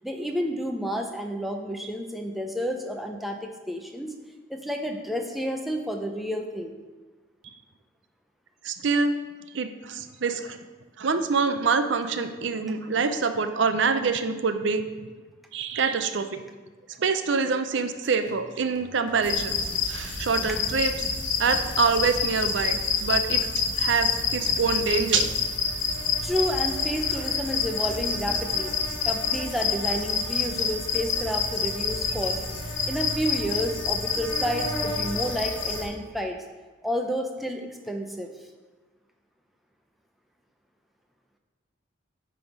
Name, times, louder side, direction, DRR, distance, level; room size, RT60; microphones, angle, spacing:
voice 1, 0.0-4.2 4.5-6.7 26.2-28.7 29.0-32.4 32.9-36.4 36.8-38.3, equal, ahead, 3 dB, 0.5 m, -30 dB
voice 2, 8.6-9.1 9.5-10.6 11.0-14.8 15.5-16.4 17.0-19.6 19.9-20.9 21.4-25.4, right 5 dB, 75° right, 9 dB, 0.5 m, -25 dB
sound 1, 18.0-22.9, right 1 dB, 45° right, 1.0 m, -47 dB
sound 2, 19.2-35.8, left 5 dB, 90° left, 1.4 m, -28 dB
9.1 x 3.5 x 5.9 m, 1.3 s
head